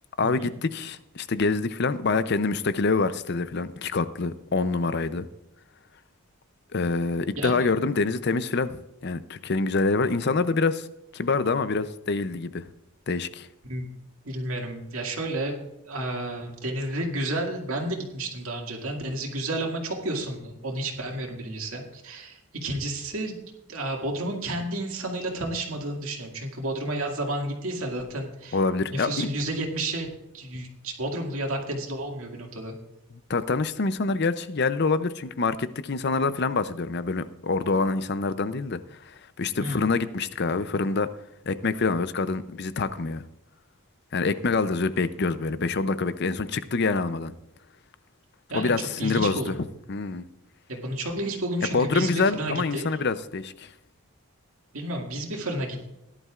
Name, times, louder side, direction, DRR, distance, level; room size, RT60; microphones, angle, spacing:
voice 1, 0.2-5.3 6.7-10.9 11.1-12.6 13.1-13.5 28.5-29.3 33.3-38.8 39.1-41.1 41.5-43.2 44.1-47.3 48.5-49.6 49.9-50.2 51.7-53.7, left 4 dB, 50° left, 13 dB, 0.6 m, -26 dB
voice 2, 7.4-7.7 13.7-13.9 14.2-23.4 23.7-28.6 28.9-30.1 30.3-32.7 39.6-39.9 48.5-49.6 50.7-52.8 54.7-55.9, right 1 dB, 75° right, 0 dB, 2.1 m, -31 dB
17.5 x 11.0 x 2.4 m, 0.86 s
head